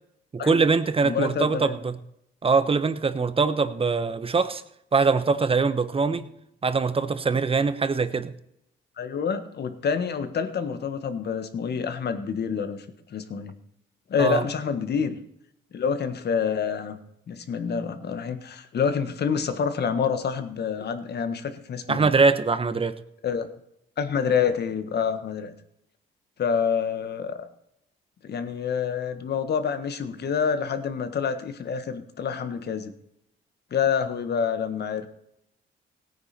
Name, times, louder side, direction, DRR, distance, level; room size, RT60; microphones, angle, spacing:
voice 1, 0.3-2.0 2.4-4.6 4.9-6.3 6.6-8.3 14.2-14.4 21.9-23.0, right 4 dB, 30° right, 11 dB, 1.1 m, -23 dB
voice 2, 1.0-1.7 9.0-12.8 13.1-13.5 14.1-15.2 15.7-17.0 17.3-22.1 23.2-23.5 24.0-25.5 26.4-27.4 28.2-32.9 33.7-35.1, left 6 dB, 55° left, 9 dB, 1.6 m, -27 dB
17.5 x 9.6 x 4.4 m, 0.78 s
cardioid pair, 90°, 20 cm